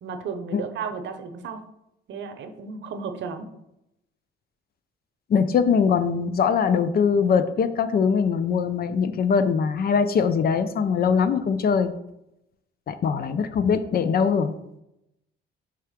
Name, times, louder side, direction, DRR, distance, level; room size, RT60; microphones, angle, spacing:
voice 1, 0.0-1.6 2.1-3.5, right 5 dB, 70° right, 8 dB, 0.7 m, -34 dB
voice 2, 5.3-11.9 12.9-14.5, left 6 dB, 50° left, 11 dB, 0.5 m, -22 dB
5.5 x 3.5 x 5.0 m, 0.85 s
cardioid pair, 90°, 20 cm